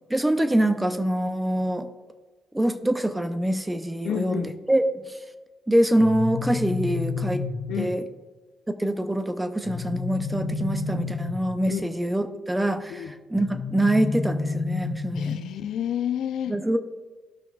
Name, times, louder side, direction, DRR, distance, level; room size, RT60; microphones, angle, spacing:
voice 1, 0.1-1.9 2.5-5.2 5.7-7.4 7.8-8.0 8.8-15.4 16.5-16.8, right 1 dB, 10° right, 9 dB, 0.5 m, -25 dB
voice 2, 4.0-4.5 7.7-8.0 11.7-11.9 12.9-13.1 15.2-16.5, left 9 dB, 75° left, 9 dB, 0.5 m, -29 dB
sound 1, 6.0-7.9 9.6-11.6 13.4-15.3, left 4 dB, 50° left, 0.9 m, -30 dB
14.0 x 5.9 x 2.4 m, 1.3 s
cardioid pair, 90°, 0 cm